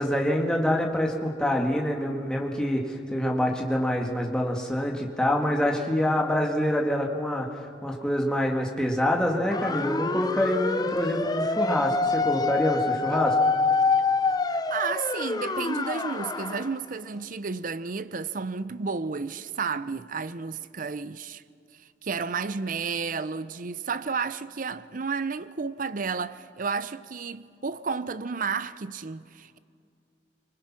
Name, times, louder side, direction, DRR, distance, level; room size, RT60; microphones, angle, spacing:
voice 1, 0.0-7.5 7.8-13.4, left 1 dB, 5° left, 2.1 m, -26 dB
sound 1, 9.5-16.7, left 3 dB, 20° left, 0.8 m, -26 dB
voice 2, 14.5-21.4 22.0-29.6, right 5 dB, 50° right, 0.6 m, -32 dB
26.0 x 24.0 x 6.2 m
head